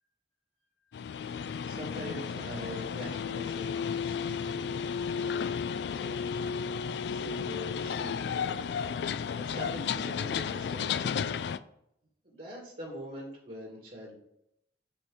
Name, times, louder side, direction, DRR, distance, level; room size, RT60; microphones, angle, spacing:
voice 1, 0.8-4.8 5.0-6.3 7.1-8.6 9.4-11.2 12.2-14.2, equal, 50° right, -2 dB, 2.0 m, -44 dB
sound 1, 0.9-11.6, left 6 dB, 65° left, 0.3 m, -33 dB
6.2 x 4.3 x 4.9 m, 0.76 s
head